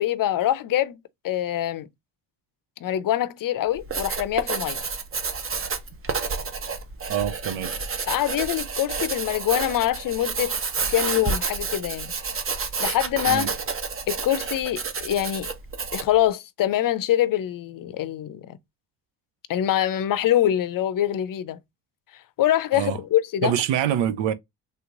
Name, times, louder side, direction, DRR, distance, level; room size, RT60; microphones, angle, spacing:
voice 1, 0.0-1.9 2.8-4.8 8.1-10.6 10.9-12.1 12.8-13.5 14.1-15.5 15.9-18.6 19.5-21.6 22.4-23.5, left 12 dB, 50° left, 0.5 m, -24 dB
Writing, 3.7-16.2, right 5 dB, 30° right, 0.7 m, -30 dB
voice 2, 7.1-7.7 13.3-13.5 22.7-23.0 23.4-24.3, right 10 dB, 85° right, 0.6 m, -25 dB
3.4 x 2.9 x 2.4 m
cardioid pair, 80°, 43 cm